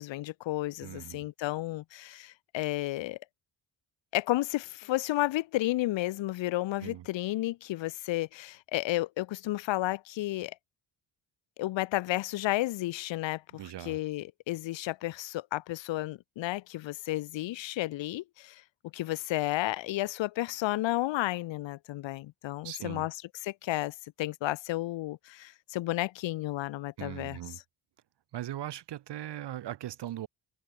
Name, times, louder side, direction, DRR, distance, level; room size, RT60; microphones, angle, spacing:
voice 1, 0.0-3.2 4.1-10.6 11.6-18.6 18.9-23.2 23.4-27.6, left 16 dB, 65° left, 0.5 m, -32 dB
voice 2, 0.8-1.3 6.8-7.1 13.6-14.0 22.6-23.1 27.0-27.6 28.3-30.3, right 13 dB, 55° right, 0.6 m, -39 dB
cardioid pair, 80°, 50 cm